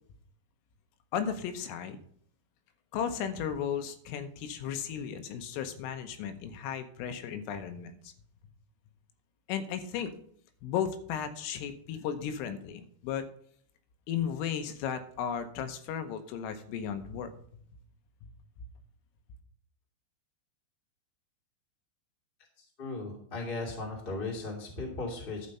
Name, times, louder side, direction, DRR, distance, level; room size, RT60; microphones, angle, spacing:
voice 1, 1.1-2.0 2.9-8.1 9.5-10.1 10.6-13.2 14.1-17.7, left 8 dB, 85° left, 9 dB, 3.5 m, -35 dB
voice 2, 22.8-25.5, left 3 dB, 20° left, -1 dB, 1.3 m, -36 dB
12.0 x 5.8 x 5.5 m, 0.62 s
omnidirectional pair, 5.8 m